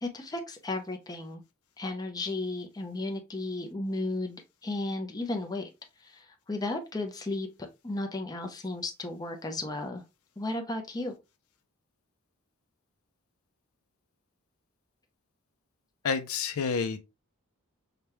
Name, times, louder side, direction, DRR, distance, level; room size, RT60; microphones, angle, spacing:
voice 1, 0.0-1.4 1.8-5.7 6.0-7.5 7.8-10.0 10.4-11.1, left 2 dB, 15° left, 0.6 m, -34 dB
voice 2, 16.0-17.0, left 5 dB, 70° left, 0.5 m, -29 dB
5.0 x 2.3 x 2.9 m
head